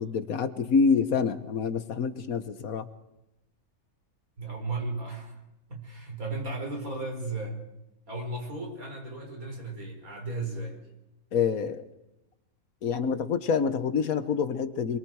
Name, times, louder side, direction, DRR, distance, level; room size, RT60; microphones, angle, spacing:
voice 1, 0.0-2.9 11.3-11.8 12.8-15.0, left 5 dB, 65° left, 12 dB, 1.5 m, -26 dB
voice 2, 4.4-5.4 5.7-7.6 8.1-10.8, right 2 dB, 65° right, 2 dB, 5.5 m, -35 dB
28.0 x 22.5 x 4.8 m, 0.94 s
omnidirectional pair, 1.6 m